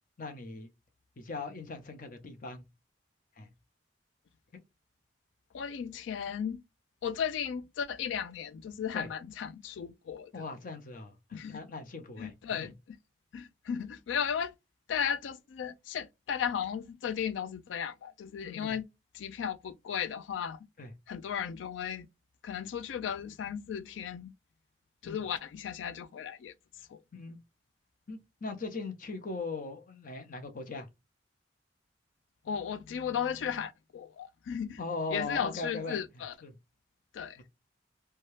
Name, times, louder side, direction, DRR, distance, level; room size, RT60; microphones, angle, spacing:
voice 1, 0.2-0.7 1.2-2.6 3.4-3.5 4.5-4.6 8.9-9.1 10.3-12.7 18.4-18.8 20.8-20.9 25.0-25.2 27.1-27.4 28.1-30.9 34.8-36.0 36.4-36.5 37.4-37.5, left 3 dB, 50° left, 0.7 m, -40 dB
voice 2, 5.5-6.6 7.0-10.3 11.3-11.6 12.2-13.0 13.3-14.5 14.9-18.8 19.1-20.6 21.1-22.1 22.4-24.3 25.0-26.5 26.9-27.0 32.5-34.8 35.1-36.3 37.1-37.4, left 8 dB, 90° left, 0.3 m, -35 dB
2.8 x 2.2 x 3.1 m
head